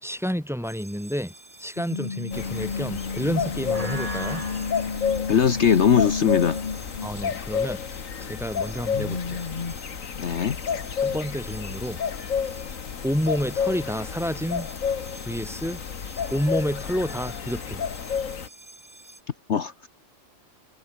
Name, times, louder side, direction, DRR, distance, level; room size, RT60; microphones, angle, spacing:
voice 1, 0.0-1.3 1.6-4.5 7.0-9.4 11.0-12.0 12.7-12.8 13.0-14.7 15.2-15.8 16.3-17.8, equal, ahead, 2.9 m, -29 dB
sound 1, 0.6-19.2, right 1 dB, 25° right, 3.6 m, -45 dB
sound 2, 1.8-7.6 8.7-9.7, left 5 dB, 35° left, 1.4 m, -32 dB
sound 3, 2.3-18.5, left 6 dB, 75° left, 1.9 m, -31 dB
voice 2, 5.3-6.6 10.2-10.6 19.5-19.9, left 7 dB, 55° left, 1.3 m, -21 dB
omnidirectional pair, 1.4 m